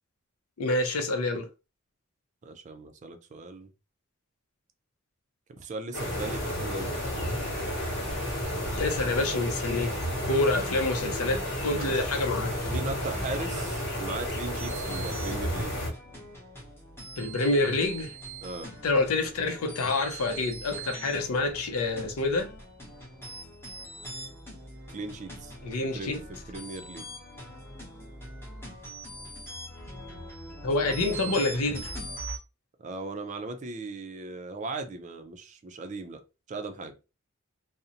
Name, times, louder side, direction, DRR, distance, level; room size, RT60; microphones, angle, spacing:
voice 1, 0.6-1.5 8.8-9.9 10.3-12.6 17.2-18.1 18.8-22.5 25.6-26.2 30.6-31.9, left 2 dB, 85° left, 0.5 m, -27 dB
voice 2, 2.4-3.7 5.6-7.2 11.7-12.1 12.6-15.8 18.4-18.7 24.9-25.5 25.9-26.1 26.5-27.2 32.8-36.2 36.5-36.9, right 3 dB, 35° right, 0.4 m, -38 dB
sound 1, 5.9-15.9, equal, 55° left, 1.2 m, -32 dB
sound 2, 14.6-32.4, right 2 dB, 10° left, 0.7 m, -42 dB
2.5 x 2.0 x 2.7 m
head